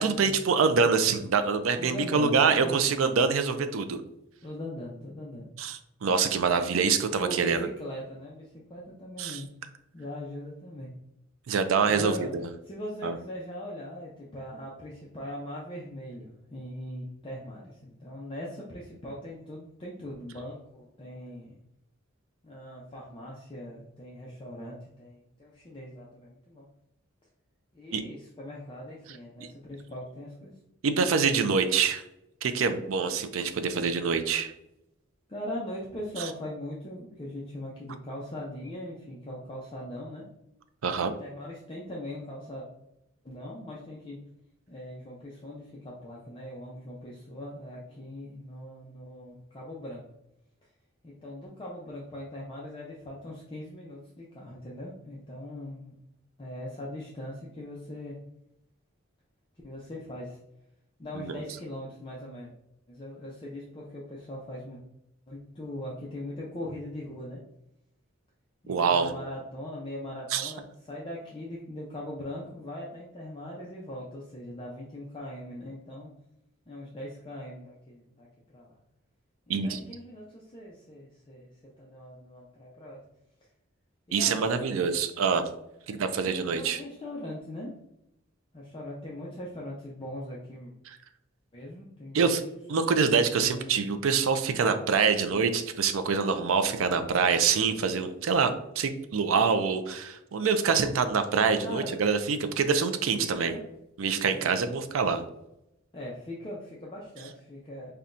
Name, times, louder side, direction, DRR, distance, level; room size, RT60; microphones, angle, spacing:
voice 1, 0.0-4.0 5.6-7.6 9.2-9.4 11.5-12.5 13.0-13.1 27.9-28.0 29.4-29.5 30.8-32.0 32.4-34.5 36.2-36.3 40.8-41.1 61.2-61.4 68.7-69.1 70.3-70.5 79.5-79.8 84.1-85.4 85.9-86.8 92.1-92.4 92.7-98.5 98.8-103.5 104.0-105.2, right 5 dB, 90° right, 8 dB, 0.4 m, -25 dB
voice 2, 1.8-2.9 4.4-5.5 7.2-9.5 9.9-10.9 11.9-12.3 12.7-21.6 22.4-26.7 27.7-30.5 35.3-40.2 41.0-42.7 43.2-44.2 44.7-50.0 51.0-56.0 56.4-58.2 59.6-60.4 61.0-62.5 62.9-64.8 65.3-67.4 68.6-76.1 76.7-78.3 78.5-78.8 79.5-81.5 81.8-83.0 84.1-84.9 85.9-87.7 88.5-90.7 91.5-92.4 93.4-93.9 101.6-102.1 103.1-103.6 104.2-104.5 105.9-107.9, left 1 dB, 25° left, -4 dB, 0.5 m, -40 dB
5.6 x 2.2 x 2.5 m, 0.84 s
head